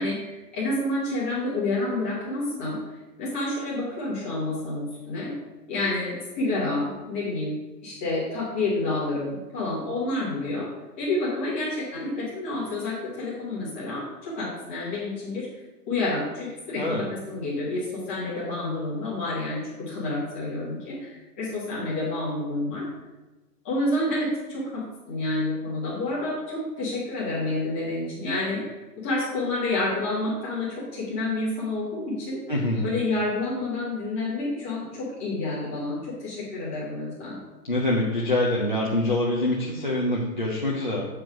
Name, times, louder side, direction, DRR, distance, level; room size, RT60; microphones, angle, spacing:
voice 1, 0.0-5.3 5.7-7.6 7.8-10.7 11.0-15.5 15.9-22.8 23.6-32.4 32.8-37.4, left 2 dB, 10° left, -9 dB, 0.9 m, -29 dB
voice 2, 32.5-32.9 37.7-41.1, left 1 dB, 30° left, -3 dB, 0.4 m, -25 dB
7.4 x 4.7 x 5.0 m, 1.1 s
hypercardioid pair, 180°, 49 cm